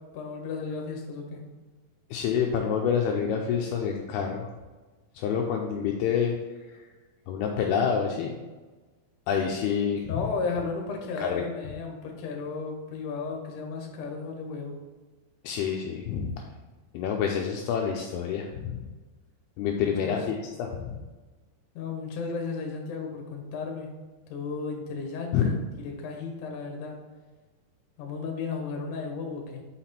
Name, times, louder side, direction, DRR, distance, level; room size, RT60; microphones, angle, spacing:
voice 1, 0.1-1.4 10.1-14.7 20.0-20.3 21.7-23.9 24.3-25.6 25.8-27.0 28.0-29.6, left 4 dB, 70° left, 2 dB, 2.0 m, -34 dB
voice 2, 2.1-4.5 5.2-6.4 7.3-8.3 9.3-10.2 11.2-11.5 15.4-16.3 16.9-18.8 19.6-21.0 25.3-25.6, left 7 dB, 85° left, 1 dB, 2.3 m, -27 dB
5.9 x 5.8 x 4.3 m, 1.3 s
omnidirectional pair, 5.1 m